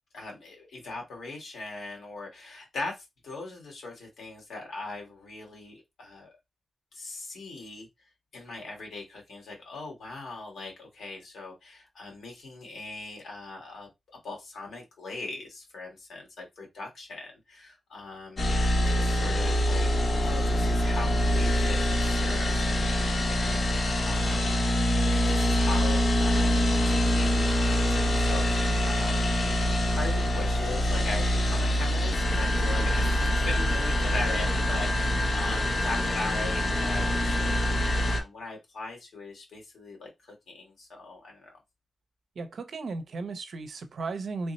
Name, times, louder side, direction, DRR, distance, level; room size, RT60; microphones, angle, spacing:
voice 1, 0.1-6.3 6.9-7.9 8.3-13.9 14.2-24.8 25.1-29.3 29.9-37.6 38.1-41.6, left 3 dB, 80° left, 1.7 m, -40 dB
sound 1, 18.4-38.2, equal, 50° left, 0.7 m, -25 dB
voice 2, 42.4-44.5, right 3 dB, 65° right, 0.5 m, -35 dB
3.4 x 2.1 x 4.0 m
wide cardioid pair, 150°, 0 cm